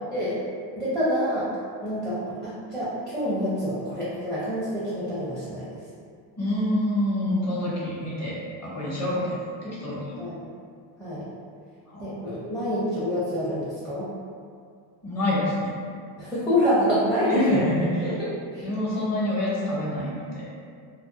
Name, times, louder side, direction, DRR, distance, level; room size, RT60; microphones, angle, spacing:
voice 1, 0.8-1.5 1.8-5.7 10.2-10.4 11.0-11.2 12.0-14.1 16.2-17.6 18.0-18.7, equal, ahead, -10 dB, 0.5 m, -27 dB
voice 2, 6.4-10.2 11.9-12.1 15.0-15.7 17.3-18.1 18.6-20.5, left 1 dB, 30° left, -6 dB, 1.0 m, -27 dB
2.5 x 2.3 x 2.5 m, 2.2 s
cardioid pair, 105°, 49 cm